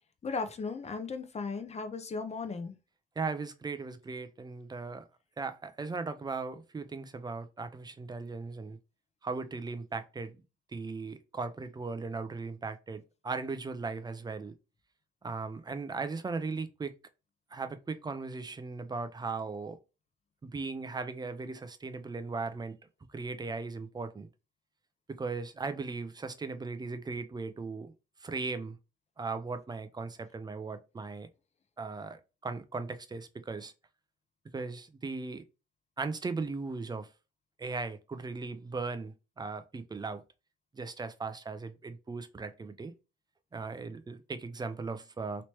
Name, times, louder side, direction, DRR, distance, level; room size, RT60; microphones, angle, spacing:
voice 1, 0.2-2.7, left 4 dB, 35° left, 0.6 m, -36 dB
voice 2, 3.2-5.0 5.4-8.8 9.2-10.4 10.7-14.5 15.2-17.0 17.5-19.8 20.4-22.8 23.1-24.3 25.1-27.9 28.2-28.8 29.2-31.3 31.8-33.7 34.5-35.4 36.0-37.1 37.6-40.2 40.7-42.9 43.5-45.5, right 4 dB, 20° right, 0.5 m, -38 dB
3.1 x 3.0 x 2.9 m
cardioid pair, 90°, 20 cm